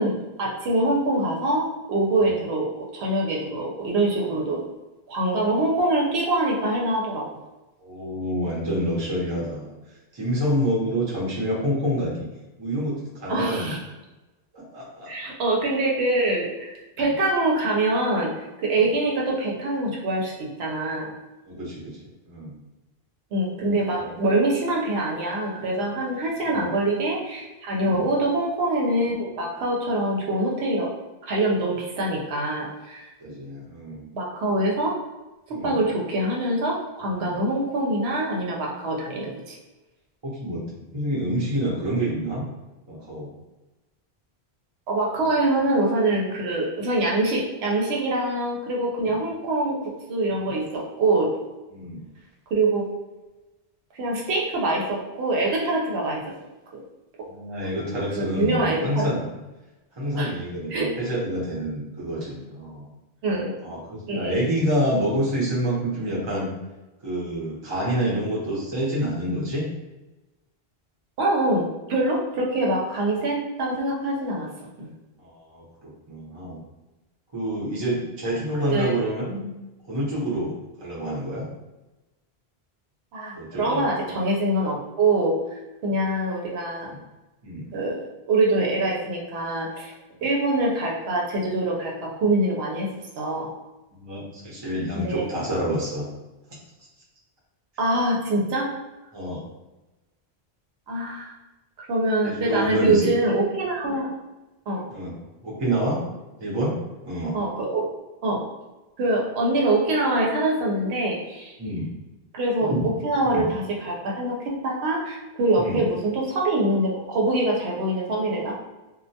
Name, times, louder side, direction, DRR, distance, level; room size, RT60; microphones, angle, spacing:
voice 1, 0.0-4.7 5.1-7.3 13.3-13.8 15.1-21.1 23.3-30.9 31.3-33.1 34.1-34.9 35.5-39.6 44.9-51.3 52.5-52.9 53.9-56.2 57.8-57.9 58.2-59.1 60.1-60.3 60.7-60.9 63.2-63.5 64.1-64.3 71.2-74.5 74.8-74.9 78.6-79.0 83.1-86.9 87.7-88.0 88.3-89.9 90.2-92.9 93.2-93.5 94.9-95.3 97.8-98.7 100.9-101.3 101.8-104.1 104.7-104.8 107.3-107.8 108.2-108.4 109.0-111.6 112.3-118.5, right 2 dB, 80° right, -2 dB, 0.8 m, -24 dB
voice 2, 7.8-9.7 10.1-12.3 12.6-13.8 14.5-15.1 17.0-17.1 18.7-18.8 21.5-22.0 22.2-22.5 23.6-24.2 26.5-26.7 27.8-28.1 33.2-34.0 35.5-35.7 37.2-37.4 40.2-42.4 42.9-43.3 45.2-45.3 49.0-49.1 50.4-50.5 51.7-52.0 57.3-59.3 59.9-62.9 63.6-66.5 67.0-69.7 75.2-76.6 77.3-79.4 79.9-81.5 83.3-83.8 86.8-87.0 87.4-87.7 93.9-96.1 99.1-99.4 102.2-103.1 104.9-105.1 105.4-106.0 106.4-107.4 111.6-111.9 112.7-112.9 113.3-113.4 115.6-115.8, equal, 30° right, -5 dB, 0.6 m, -28 dB
2.1 x 2.1 x 2.6 m, 1.1 s
omnidirectional pair, 1.1 m